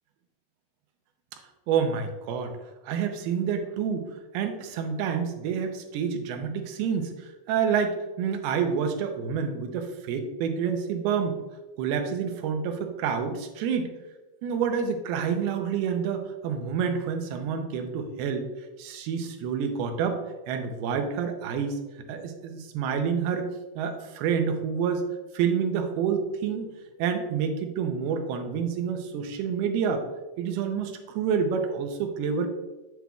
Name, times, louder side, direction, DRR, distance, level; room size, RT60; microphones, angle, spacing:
voice 1, 1.7-2.6 2.8-4.1 4.3-11.4 11.8-13.9 14.4-18.5 18.8-20.2 20.5-21.8 22.1-23.5 23.8-25.0 25.3-26.7 27.0-30.1 30.4-32.5, right 6 dB, 85° right, 6 dB, 2.7 m, -28 dB
8.3 x 7.7 x 2.3 m, 1.1 s
omnidirectional pair, 4.4 m